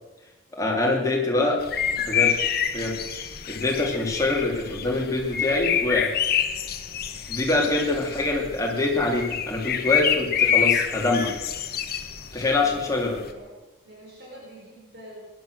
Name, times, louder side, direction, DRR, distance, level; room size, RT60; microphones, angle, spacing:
voice 1, 0.5-1.6 2.0-2.4 2.7-3.0 3.5-6.1 7.3-11.3 12.3-13.2, left 2 dB, 15° left, -1 dB, 2.8 m, -24 dB
sound 1, 1.6-13.3, left 8 dB, 45° left, 1.1 m, -27 dB
voice 2, 7.7-8.0 12.6-13.5 13.8-15.2, right 1 dB, 55° right, -4 dB, 4.8 m, -45 dB
19.5 x 11.0 x 6.4 m, 1.1 s
head